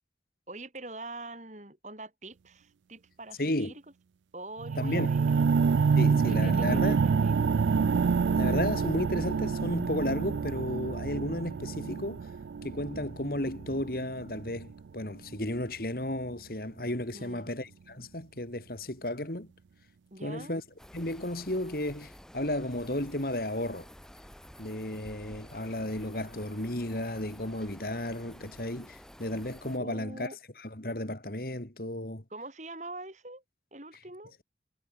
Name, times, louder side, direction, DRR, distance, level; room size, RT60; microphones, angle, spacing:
voice 1, 0.5-3.8 4.3-5.6 6.3-7.4 17.1-17.5 20.1-20.6 29.8-30.4 32.3-33.4 33.7-34.3, right 2 dB, 40° right, 7.8 m, -44 dB
voice 2, 3.4-3.7 4.8-5.1 5.9-7.0 8.4-12.2 12.6-19.5 20.2-20.6 20.9-23.9 24.6-30.3 30.6-32.2, left 1 dB, 55° left, 2.9 m, -33 dB
sound 1, 4.6-14.7 15.4-15.5, right 5 dB, 85° right, 0.4 m, -27 dB
sound 2, 20.8-29.8, equal, 5° left, 5.7 m, -51 dB
head